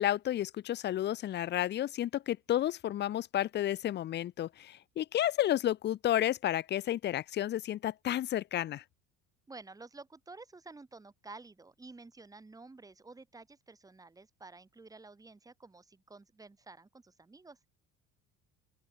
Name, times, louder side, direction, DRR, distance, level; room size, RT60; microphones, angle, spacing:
voice 1, 0.0-8.8, left 12 dB, 35° left, 0.6 m, -31 dB
voice 2, 9.5-17.7, right 3 dB, 10° right, 2.4 m, -51 dB
open air
cardioid pair, 135°, 32 cm